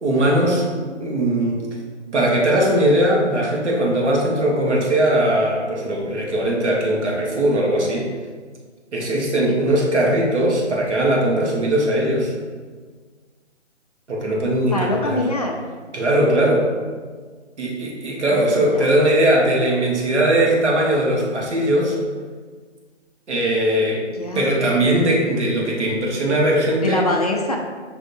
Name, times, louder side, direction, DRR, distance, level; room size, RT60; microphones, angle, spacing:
voice 1, 0.0-1.6 2.1-8.1 8.9-12.3 14.1-15.2 15.9-16.7 17.6-22.0 23.3-24.0 24.3-27.0, right 1 dB, 70° right, -3 dB, 1.2 m, -19 dB
voice 2, 14.7-15.6 18.3-18.9 24.2-24.5 26.8-27.6, left 1 dB, 35° left, 0 dB, 0.4 m, -24 dB
6.9 x 2.7 x 2.6 m, 1.5 s
figure-of-eight pair, 155°, 36 cm